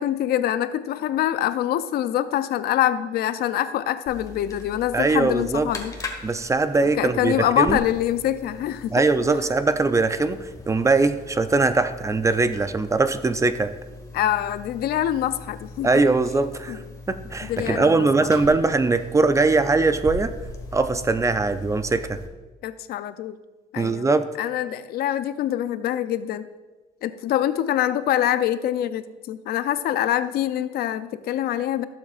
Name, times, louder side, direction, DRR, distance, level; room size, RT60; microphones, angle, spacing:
voice 1, 0.0-5.9 7.0-9.0 14.1-15.9 16.7-16.8 17.4-18.1 22.6-23.4 23.7-24.1 24.4-26.5 27.0-31.8, left 11 dB, 65° left, 13 dB, 0.5 m, -25 dB
sound 1, 4.1-22.3, left 2 dB, 20° left, 1.5 m, -40 dB
voice 2, 4.9-5.7 6.2-7.8 8.9-13.7 15.8-20.3 20.7-22.2 23.8-24.3, right 3 dB, 20° right, 11 dB, 0.5 m, -21 dB
15.5 x 7.3 x 2.4 m, 1.2 s
cardioid pair, 110°, 17 cm